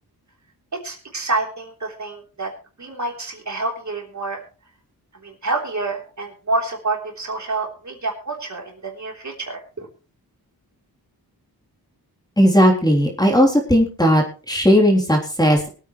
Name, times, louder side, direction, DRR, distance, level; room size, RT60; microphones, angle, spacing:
voice 1, 0.8-2.5 2.8-4.4 5.2-9.9, right 3 dB, 45° right, 1 dB, 3.6 m, -28 dB
voice 2, 12.4-15.7, equal, 10° left, 0 dB, 3.4 m, -16 dB
23.0 x 9.0 x 3.2 m, 0.36 s
wide cardioid pair, 95°, 39 cm